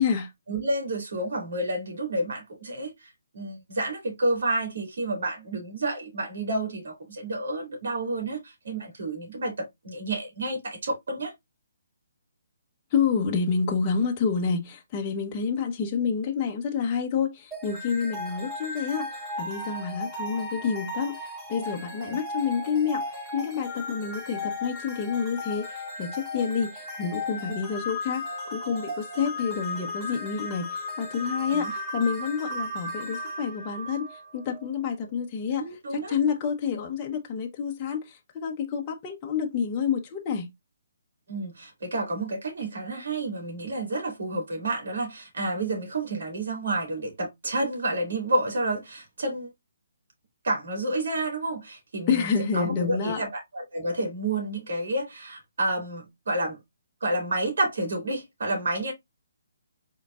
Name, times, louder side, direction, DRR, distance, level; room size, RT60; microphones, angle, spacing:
voice 1, 0.5-11.3 22.1-22.2 31.5-31.7 35.6-36.2 41.3-49.5 50.4-56.6 57.0-58.9, right 2 dB, 70° right, 2.5 m, -30 dB
voice 2, 12.9-21.2 21.5-28.2 28.5-35.6 35.9-40.5 52.1-53.2, left 6 dB, 25° left, 1.0 m, -28 dB
sound 1, 17.5-34.7, left 2 dB, 20° right, 2.3 m, -36 dB
5.0 x 3.9 x 2.4 m
hypercardioid pair, 155°, 0 cm